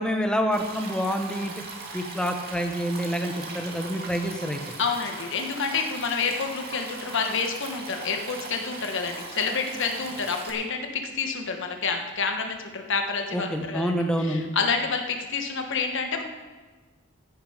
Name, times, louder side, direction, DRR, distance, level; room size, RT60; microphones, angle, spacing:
voice 1, 0.0-1.5 1.9-4.6 13.3-14.4, equal, 5° left, 4 dB, 1.2 m, -27 dB
Stream, 0.5-10.5, right 3 dB, 45° right, 2.2 m, -39 dB
voice 2, 4.8-13.9 14.2-16.2, left 5 dB, 60° left, 4 dB, 1.4 m, -28 dB
15.0 x 10.0 x 5.1 m, 1.3 s
head